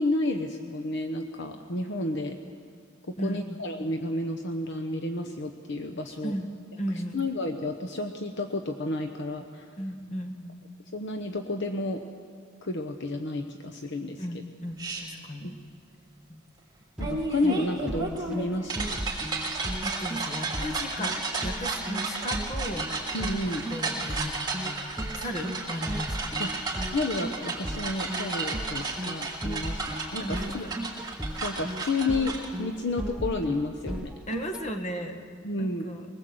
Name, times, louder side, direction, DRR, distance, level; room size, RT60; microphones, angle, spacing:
voice 1, 0.0-2.4 3.2-6.4 7.1-9.7 10.9-12.0 12.6-14.4 17.0-19.0 23.1-23.6 26.4-26.5 26.9-29.8 30.1-30.6 31.4-34.1 35.4-35.8, left 2 dB, 55° left, 6 dB, 1.0 m, -31 dB
voice 2, 3.2-3.6 6.2-7.2 9.8-10.6 14.2-15.5 16.3-16.4 19.8-23.2 23.7-26.3 30.2-30.8 34.3-35.2 35.6-36.1, equal, 35° left, 5 dB, 1.8 m, -36 dB
sound 1, 14.8-15.0 17.0-32.5, right 3 dB, 20° right, 3.2 m, -33 dB
sound 2, 17.0-34.7, equal, 5° right, 0.9 m, -37 dB
22.5 x 19.5 x 7.9 m, 2.2 s
head